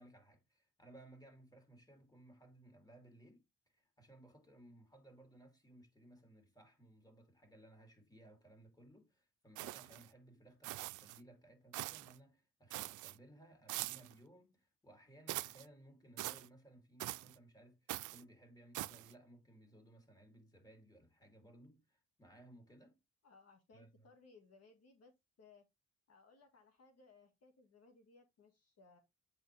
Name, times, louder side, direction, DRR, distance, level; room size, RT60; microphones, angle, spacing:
voice 1, 0.0-3.4 3.7-23.0 23.7-24.1, right 1 dB, 10° left, 3.2 m, -61 dB
sound 1, 9.6-10.1 10.6-11.2 11.7-12.2 12.7-13.2 13.7-14.1 15.3-15.7 16.2-16.5 17.0-17.4 17.9-18.2 18.7-19.1, right 18 dB, 80° right, 0.5 m, -43 dB
voice 2, 23.2-25.1 25.4-25.7 26.1-29.0, left 4 dB, 55° left, 1.8 m, -64 dB
8.5 x 4.2 x 3.4 m
cardioid pair, 90°, 30 cm